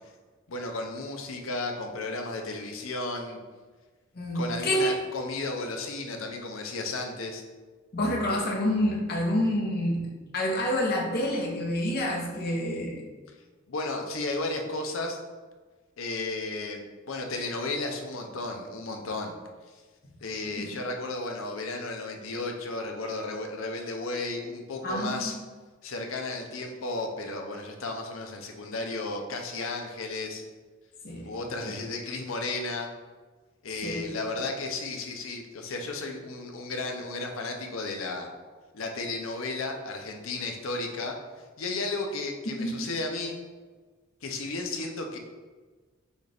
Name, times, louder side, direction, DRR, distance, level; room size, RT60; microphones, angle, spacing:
voice 1, 0.5-3.4 4.3-7.4 13.7-15.2 16.0-19.3 20.2-25.4 25.8-30.4 31.2-32.9 33.6-38.3 38.7-41.2 41.6-43.4 44.2-45.2, left 2 dB, 70° left, 3 dB, 0.7 m, -33 dB
voice 2, 4.1-4.9 7.9-10.0 10.3-12.9 20.6-20.7 24.8-25.4 31.0-31.3 31.6-31.7 33.8-34.1 42.6-42.7, left 1 dB, 50° left, -2 dB, 1.0 m, -28 dB
6.3 x 2.5 x 3.4 m, 1.4 s
head